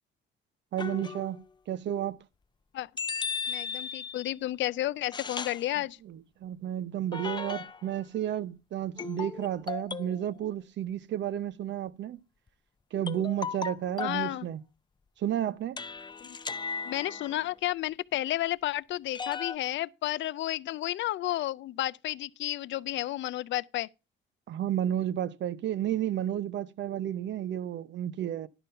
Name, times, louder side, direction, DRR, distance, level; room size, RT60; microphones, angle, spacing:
voice 1, 0.7-1.4 1.7-2.2 6.0-12.2 12.9-14.6 15.2-15.8 24.5-28.5, right 11 dB, 65° right, 0.7 m, -32 dB
sound 1, 0.8-1.4 3.0-4.3 5.1-5.7 7.1-7.9 9.0-10.2 13.1-14.3 15.8-17.5 19.1-19.6, left 5 dB, 20° left, 0.5 m, -36 dB
voice 2, 3.5-6.0 14.0-14.5 16.2-16.4 16.8-23.9, left 14 dB, 70° left, 0.4 m, -32 dB
11.0 x 5.3 x 5.6 m
cardioid pair, 90°, 20 cm